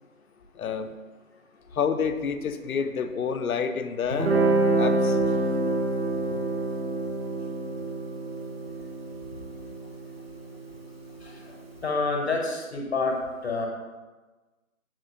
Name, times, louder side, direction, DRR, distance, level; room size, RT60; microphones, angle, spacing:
voice 1, 0.6-1.0 1.7-4.3 4.8-5.2, left 6 dB, 80° left, 9 dB, 0.5 m, -28 dB
Guitar, 4.1-11.2, right 2 dB, 45° right, 0.5 m, -27 dB
voice 2, 11.2-11.6 11.8-13.7, left 3 dB, 50° left, 1 dB, 0.7 m, -28 dB
7.1 x 2.6 x 2.6 m, 1.2 s
figure-of-eight pair, 155°, 42 cm